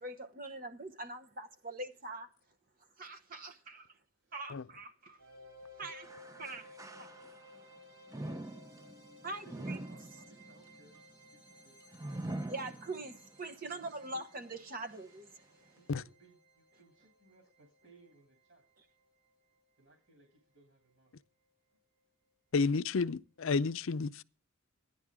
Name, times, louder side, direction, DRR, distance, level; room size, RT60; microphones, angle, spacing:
voice 1, 0.0-2.3 3.0-4.0 4.3-5.2 5.8-6.1 6.4-6.7 7.0-7.1 9.2-9.8 12.5-15.8, right 2 dB, 40° right, 0.9 m, -43 dB
voice 2, 3.1-3.9 4.2-4.4 9.0-11.8 13.5-14.1 15.7-18.6 19.8-21.1, right 3 dB, 55° right, 2.8 m, -65 dB
sound 1, 5.2-20.2, left 1 dB, 85° right, 6.7 m, -59 dB
sound 2, 6.0-7.6 8.1-13.4 13.8-13.9 14.8-14.9, right 1 dB, 15° right, 0.6 m, -44 dB
voice 3, 22.5-24.2, left 4 dB, 65° left, 0.5 m, -31 dB
15.0 x 10.5 x 3.6 m
head